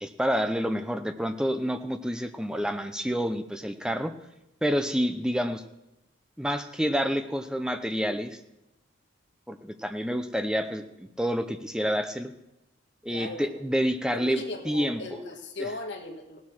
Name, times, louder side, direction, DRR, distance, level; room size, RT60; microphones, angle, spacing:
voice 1, 0.0-4.1 4.6-5.6 6.4-8.4 9.5-12.3 13.0-15.0 15.6-15.7, equal, 5° right, 8 dB, 0.6 m, -28 dB
voice 2, 13.1-13.6 14.1-16.4, left 2 dB, 55° left, 3 dB, 1.6 m, -38 dB
17.0 x 7.2 x 6.3 m, 0.92 s
head